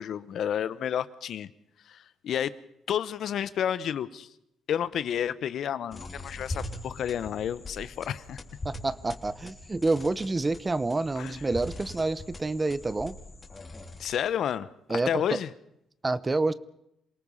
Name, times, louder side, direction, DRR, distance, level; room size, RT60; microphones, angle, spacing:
voice 1, 0.0-1.5 1.9-2.5 2.9-4.3 4.7-8.4 11.2-11.4 14.0-15.5, left 9 dB, 70° left, 16 dB, 1.0 m, -31 dB
sound 1, 5.9-14.3, left 1 dB, 30° left, 3.5 m, -42 dB
voice 2, 8.6-13.1 14.9-15.4 16.0-16.5, right 3 dB, 20° right, 18 dB, 0.9 m, -28 dB
27.5 x 18.5 x 5.6 m, 0.80 s
cardioid pair, 90°, 0 cm